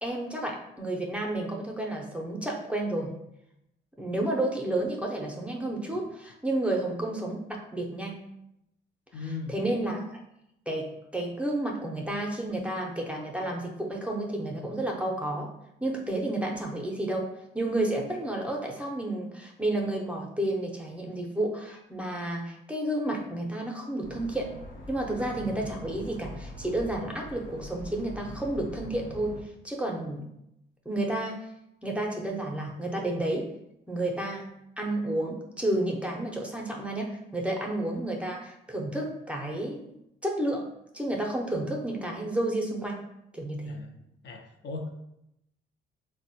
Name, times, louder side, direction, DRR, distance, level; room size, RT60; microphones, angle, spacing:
voice 1, 0.0-3.1 4.0-8.3 9.5-10.2 10.7-15.5 15.8-24.5 24.9-29.3 29.6-30.3 30.9-31.4 31.8-33.5 33.9-39.8 40.2-40.6 40.9-43.0 43.3-43.8, right 1 dB, 5° right, -1 dB, 0.5 m, -31 dB
voice 2, 9.1-9.6 43.6-43.9 44.2-45.0, left 4 dB, 60° left, 3 dB, 0.5 m, -37 dB
sound 1, 24.0-29.4, equal, 85° left, 0.9 m, -43 dB
3.7 x 2.1 x 2.7 m, 0.82 s
cardioid pair, 90°, 20 cm